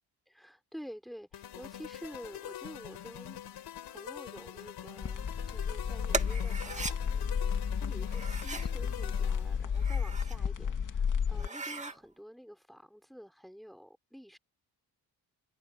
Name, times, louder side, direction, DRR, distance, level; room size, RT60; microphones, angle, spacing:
voice 1, 0.3-3.4 3.8-14.4, equal, ahead, 4.4 m, -49 dB
sound 1, 1.3-9.7, left 11 dB, 80° left, 5.2 m, -45 dB
sound 2, 5.0-11.5, left 7 dB, 50° left, 2.6 m, -32 dB
sound 3, 6.1-7.0 8.1-8.7 9.6-10.4 10.8-10.9 11.3-12.0, right 3 dB, 15° right, 2.3 m, -38 dB
cardioid pair, 110°, 40 cm